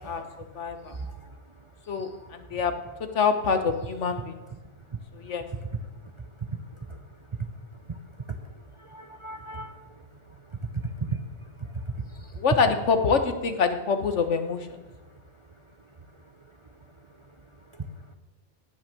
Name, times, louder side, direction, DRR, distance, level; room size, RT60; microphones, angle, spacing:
voice 1, 0.0-1.4 1.8-2.6 4.2-4.3 4.9-5.0 5.5-5.6 6.2-7.0 7.3-7.5 7.9-8.0 8.3-12.4 17.7-17.9, right 4 dB, 30° right, 6 dB, 0.6 m, -37 dB
voice 2, 0.5-0.9 1.9-2.7 3.1-4.3 5.1-5.4 12.4-14.8, left 5 dB, 80° left, 8 dB, 1.5 m, -25 dB
17.5 x 6.2 x 6.8 m, 1.2 s
omnidirectional pair, 1.2 m